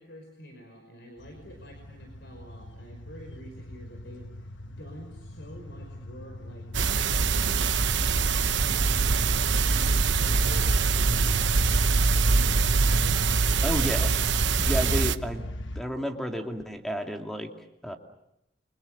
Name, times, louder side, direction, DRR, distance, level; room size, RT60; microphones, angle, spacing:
voice 1, 0.0-13.2, equal, 70° left, 4 dB, 5.4 m, -47 dB
sound 1, 1.2-15.8, left 1 dB, 85° left, 1.2 m, -38 dB
sound 2, 6.7-15.2, right 4 dB, 80° right, 0.9 m, -23 dB
voice 2, 13.6-14.1 14.7-15.4 15.7-17.5 17.8-18.0, equal, ahead, 3 dB, 2.6 m, -31 dB
29.5 x 25.5 x 6.6 m, 0.83 s
head